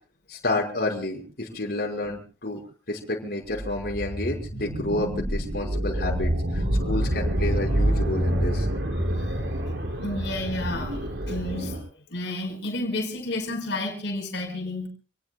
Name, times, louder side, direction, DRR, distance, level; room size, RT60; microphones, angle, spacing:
voice 1, 0.3-2.6 2.9-8.7, left 2 dB, 55° left, 5.8 m, -30 dB
sound 1, 3.5-11.8, right 1 dB, 75° right, 5.9 m, -27 dB
voice 2, 10.0-14.9, left 2 dB, 80° left, 5.4 m, -31 dB
29.5 x 19.5 x 2.3 m
head